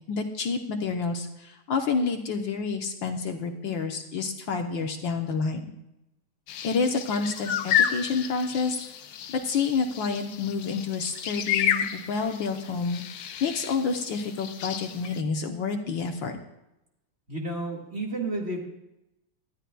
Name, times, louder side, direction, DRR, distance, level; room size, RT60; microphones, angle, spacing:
voice 1, 0.1-5.6 6.6-8.8 9.3-13.0 13.4-16.4, left 5 dB, 65° left, 4 dB, 1.7 m, -29 dB
sound 1, 6.5-15.2, left 9 dB, 80° left, 1.7 m, -31 dB
voice 2, 17.3-18.6, right 2 dB, 30° right, -1 dB, 2.0 m, -31 dB
19.5 x 12.5 x 2.3 m, 0.88 s
omnidirectional pair, 2.4 m